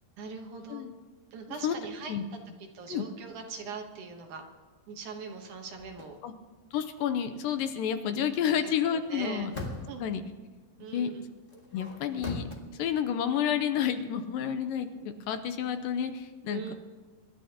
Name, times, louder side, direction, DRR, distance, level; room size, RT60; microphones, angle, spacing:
voice 1, 0.2-0.8 1.3-2.1 2.7-4.4 4.9-6.2 8.4-9.5 9.9-10.1 10.8-11.3 16.5-16.7, right 5 dB, 65° right, 3 dB, 2.4 m, -41 dB
sound 1, 5.7-6.1 9.0-10.1 11.5-12.6, left 3 dB, 35° left, 0.8 m, -40 dB
voice 2, 6.7-9.5 10.0-10.2 10.8-11.1 11.7-12.5 12.8-16.7, left 8 dB, 80° left, 8 dB, 2.3 m, -30 dB
26.5 x 12.5 x 2.9 m, 1.4 s
omnidirectional pair, 4.2 m